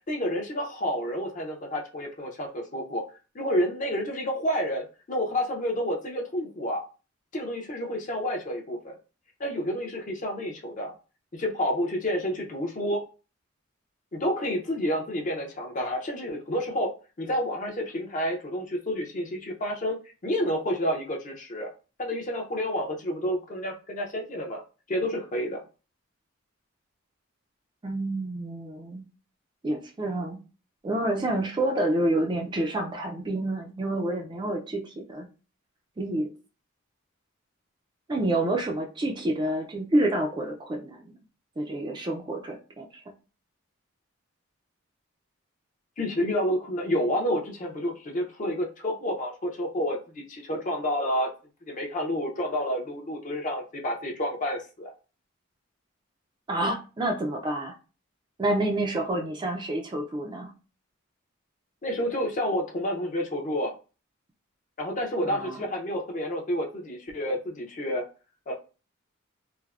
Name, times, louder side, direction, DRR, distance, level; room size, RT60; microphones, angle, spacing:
voice 1, 0.1-3.0 3.3-6.8 7.3-9.0 9.4-10.9 11.3-13.0 14.1-16.9 17.2-20.0 20.2-21.7 22.0-24.6 24.9-25.6 46.0-51.3 51.7-54.9 61.8-63.7 64.8-68.0 68.5-68.6, equal, 35° left, 1 dB, 0.5 m, -29 dB
voice 2, 27.8-29.0 29.6-30.4 30.8-35.3 36.0-36.3 38.1-41.1 41.6-43.0 56.5-57.7 58.4-60.5 65.2-65.6, right 1 dB, 20° right, 1 dB, 0.3 m, -28 dB
3.2 x 2.0 x 2.3 m, 0.34 s
head